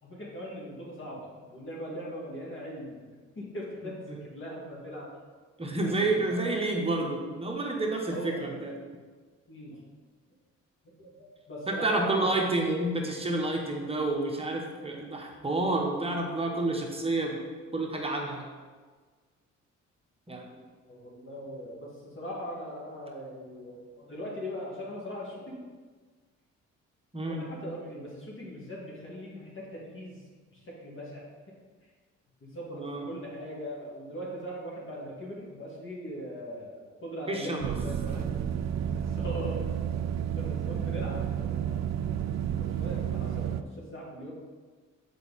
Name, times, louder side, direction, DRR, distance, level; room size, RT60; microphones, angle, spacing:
voice 1, 0.0-5.1 5.8-6.5 8.1-8.4 9.5-9.8 11.0-12.8 20.9-25.6 27.3-30.2 30.5-31.2 32.4-38.4 38.9-39.7 40.3-42.2 42.6-44.3, equal, 40° left, -4 dB, 2.2 m, -40 dB
voice 2, 5.6-8.7 11.7-17.4 17.7-18.5 20.3-20.6 27.1-27.5 32.7-33.1 37.3-37.7, right 2 dB, 20° right, 0 dB, 1.1 m, -29 dB
sound 1, 37.6-43.6, right 9 dB, 60° right, 0.5 m, -31 dB
7.0 x 4.6 x 4.2 m, 1.4 s
cardioid pair, 90°, 30 cm